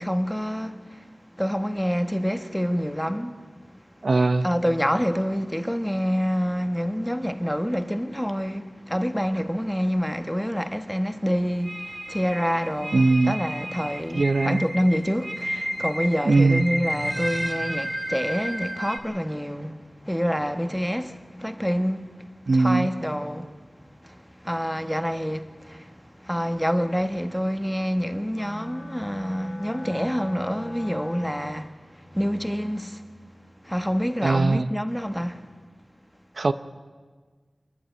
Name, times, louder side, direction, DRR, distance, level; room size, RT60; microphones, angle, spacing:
voice 1, 0.0-4.1 4.4-23.6 24.0-33.1 33.6-35.5, equal, ahead, 1.1 m, -27 dB
voice 2, 4.0-4.5 12.9-13.4 14.1-14.6 16.2-16.6 22.5-22.9 34.2-34.7 36.4-36.5, right 3 dB, 70° right, 0.6 m, -20 dB
sound 1, 11.6-19.0, equal, 25° right, 2.4 m, -32 dB
Wind instrument woodwind instrument, 28.3-31.7, left 1 dB, 45° left, 2.4 m, -40 dB
28.0 x 11.0 x 9.0 m
wide cardioid pair, 75°, 0 cm